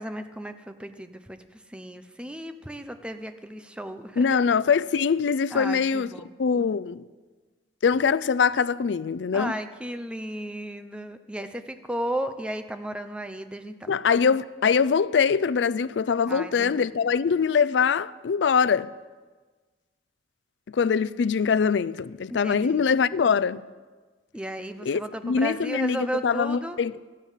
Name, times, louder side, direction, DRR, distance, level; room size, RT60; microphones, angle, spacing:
voice 1, 0.0-4.3 5.5-6.3 9.3-13.9 16.3-17.0 22.3-22.9 24.3-26.8, right 1 dB, 5° right, 0.7 m, -34 dB
voice 2, 4.2-6.1 6.4-7.0 7.8-9.5 13.9-18.9 20.7-23.6 24.9-26.9, left 6 dB, 85° left, 0.4 m, -23 dB
17.0 x 13.0 x 5.7 m
head